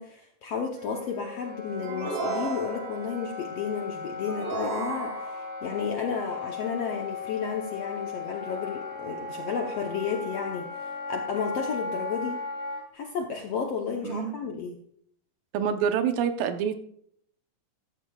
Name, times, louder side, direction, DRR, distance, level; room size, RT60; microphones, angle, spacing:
voice 1, 0.0-12.4 12.9-14.8, left 6 dB, 65° left, 2 dB, 1.6 m, -32 dB
Wind instrument woodwind instrument, 0.8-12.8, left 4 dB, 5° right, 1.4 m, -37 dB
sound 1, 1.8-3.2 4.2-5.6, right 3 dB, 60° right, 3.6 m, -33 dB
voice 2, 14.0-14.3 15.5-16.8, right 8 dB, 90° right, 8 dB, 2.6 m, -26 dB
13.5 x 13.5 x 2.3 m, 0.65 s
omnidirectional pair, 3.9 m